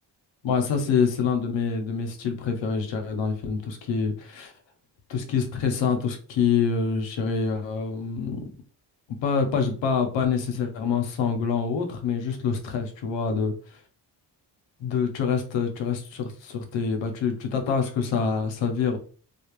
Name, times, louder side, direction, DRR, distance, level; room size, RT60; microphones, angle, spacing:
voice 1, 0.4-4.5 5.1-8.4 9.2-13.5 14.8-19.0, left 6 dB, 85° left, 0.7 m, -26 dB
2.3 x 2.1 x 3.0 m
cardioid pair, 65°, 44 cm